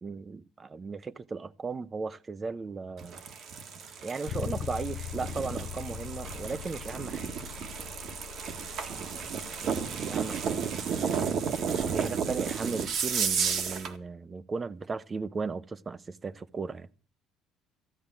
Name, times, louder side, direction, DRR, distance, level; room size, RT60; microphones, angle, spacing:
voice 1, 0.0-3.2 4.0-7.3 9.6-10.4 11.9-16.9, right 4 dB, 25° right, 0.7 m, -36 dB
sound 1, 3.0-14.0, right 6 dB, 55° right, 1.7 m, -33 dB
Bass guitar, 4.3-14.1, left 10 dB, 65° left, 0.7 m, -43 dB
14.0 x 8.6 x 7.6 m
cardioid pair, 120°, 0 cm